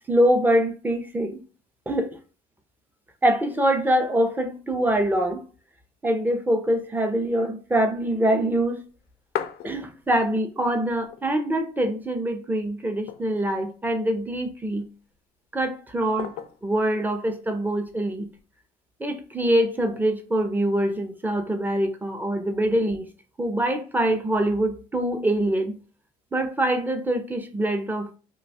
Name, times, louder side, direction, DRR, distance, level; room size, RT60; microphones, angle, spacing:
voice 1, 0.1-1.4 1.9-2.1 3.2-5.4 6.0-8.8 9.6-14.9 15.5-16.3 16.6-18.3 19.0-23.1 23.4-25.8 26.3-28.2, right 1 dB, 10° right, 0.5 m, -24 dB
sound 1, 8.8-10.3 10.7-10.8 11.0-11.8 12.2-12.3 12.8-13.6 14.3-15.0 16.2-16.8 17.9-18.4, left 10 dB, 75° left, 0.4 m, -36 dB
2.6 x 2.3 x 4.0 m
cardioid pair, 110°, 17 cm